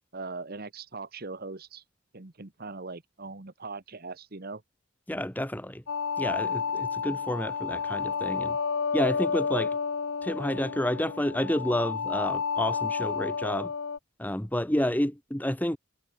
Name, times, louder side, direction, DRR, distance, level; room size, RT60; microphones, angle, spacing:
voice 1, 0.1-1.8 2.1-4.6, right 3 dB, 45° right, 1.2 m, -40 dB
voice 2, 5.1-5.8 6.2-8.6 8.9-9.8 10.2-13.7 14.2-15.8, left 1 dB, 10° left, 1.1 m, -29 dB
sound 1, 5.9-14.0, left 5 dB, 65° left, 0.6 m, -31 dB
head